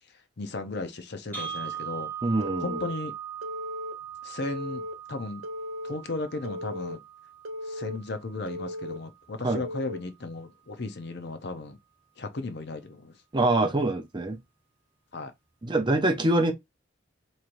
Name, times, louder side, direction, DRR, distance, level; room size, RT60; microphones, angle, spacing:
voice 1, 0.4-2.1 2.6-3.1 4.2-4.8 5.1-5.4 5.8-7.0 7.7-11.8 12.2-13.1 15.1-15.3, left 3 dB, 55° left, 0.7 m, -35 dB
sound 1, 1.3-9.4, right 9 dB, 10° left, 1.5 m, -40 dB
voice 2, 2.2-2.8 9.4-9.6 13.3-14.4 15.6-16.5, right 2 dB, 25° right, 0.6 m, -24 dB
Telephone, 2.4-2.9 3.4-3.9 4.4-4.9 5.4-5.9 6.4-7.0 7.4-8.0 8.5-9.0 9.5-10.0, left 1 dB, 80° right, 0.9 m, -36 dB
4.4 x 3.1 x 2.6 m
head